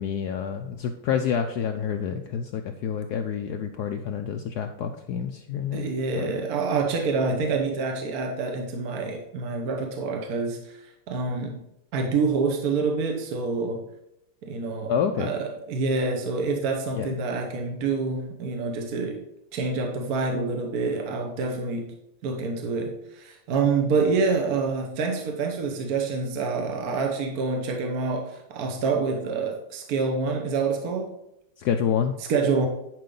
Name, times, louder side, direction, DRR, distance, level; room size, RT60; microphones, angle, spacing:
voice 1, 0.0-6.3 14.9-15.3 16.9-17.1 31.6-32.2, left 7 dB, 70° left, 1.0 m, -28 dB
voice 2, 5.7-11.6 11.9-13.8 14.4-19.2 19.5-21.9 22.2-31.1 32.3-32.7, right 4 dB, 55° right, 1.3 m, -27 dB
10.5 x 5.1 x 3.8 m
omnidirectional pair, 2.1 m